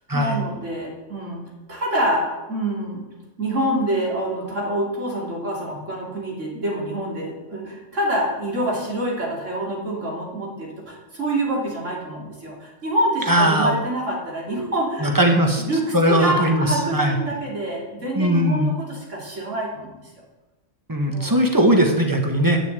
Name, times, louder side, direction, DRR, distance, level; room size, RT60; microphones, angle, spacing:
voice 1, 0.1-1.4 1.7-3.0 3.4-15.2 15.6-20.2 21.1-21.4, right 1 dB, 90° right, -3 dB, 3.4 m, -26 dB
voice 2, 13.3-13.7 14.5-14.7 15.0-15.6 15.9-17.1 18.1-18.7 20.9-22.6, right 1 dB, 15° right, 3 dB, 1.5 m, -19 dB
9.3 x 6.9 x 8.3 m, 1.1 s
omnidirectional pair, 1.3 m